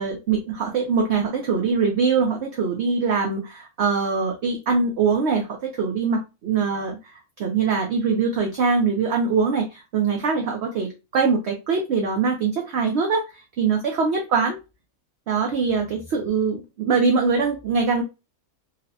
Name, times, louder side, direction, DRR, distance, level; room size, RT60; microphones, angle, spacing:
voice 1, 0.0-13.3 13.6-14.6 15.3-18.0, right 5 dB, 60° right, 2 dB, 0.8 m, -23 dB
4.0 x 2.1 x 2.7 m, 0.27 s
omnidirectional pair, 1.5 m